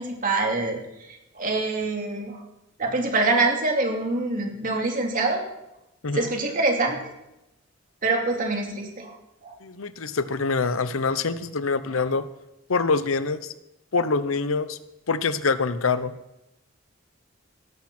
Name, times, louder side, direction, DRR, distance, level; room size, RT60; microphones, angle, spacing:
voice 1, 0.0-2.4 2.8-5.5 6.1-7.1 8.0-9.2 9.4-9.6, right 3 dB, 40° right, 1 dB, 2.6 m, -25 dB
voice 2, 9.6-12.2 12.7-13.5 13.9-14.8 15.1-16.1, left 4 dB, 85° left, 13 dB, 0.8 m, -25 dB
18.0 x 12.0 x 4.4 m, 0.91 s
head